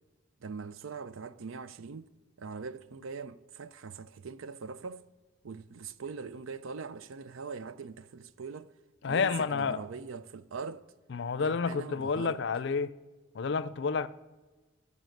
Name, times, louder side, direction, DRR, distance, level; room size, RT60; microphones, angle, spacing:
voice 1, 0.4-2.1 2.4-5.0 5.4-8.7 9.1-10.8 11.4-12.4, right 5 dB, 90° right, 0.6 m, -42 dB
voice 2, 9.0-9.8 11.1-12.9 13.3-14.1, left 5 dB, 60° left, 0.4 m, -30 dB
14.5 x 5.4 x 7.8 m
head